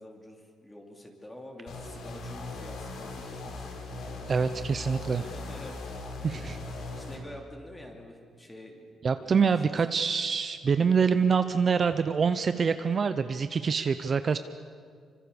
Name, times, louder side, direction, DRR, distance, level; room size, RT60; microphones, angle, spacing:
voice 1, 0.0-4.3 4.8-9.8, left 1 dB, 10° left, 1 dB, 2.9 m, -47 dB
sound 1, 1.7-7.2, left 2 dB, 70° left, 4.1 m, -39 dB
voice 2, 4.3-5.3 6.2-6.6 9.0-14.4, right 6 dB, 35° right, 10 dB, 0.6 m, -25 dB
26.0 x 25.0 x 7.0 m, 2.1 s
cardioid pair, 145°, 0 cm